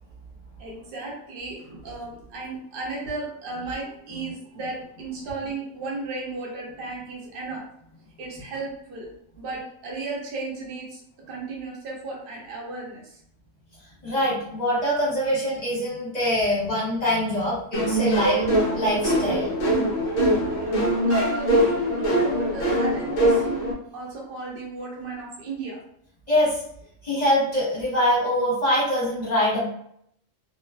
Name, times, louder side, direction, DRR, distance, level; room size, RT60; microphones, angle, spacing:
voice 1, 0.6-7.6 8.2-9.1 9.4-11.0 11.3-13.2 20.5-23.6 23.9-25.8, right 2 dB, 50° right, -4 dB, 0.9 m, -34 dB
voice 2, 14.0-18.4 18.7-19.5 26.3-26.6 27.0-29.7, equal, 35° left, -8 dB, 0.9 m, -24 dB
sound 1, 17.7-23.7, right 1 dB, 65° left, 0.5 m, -22 dB
2.4 x 2.2 x 2.2 m, 0.71 s
omnidirectional pair, 1.3 m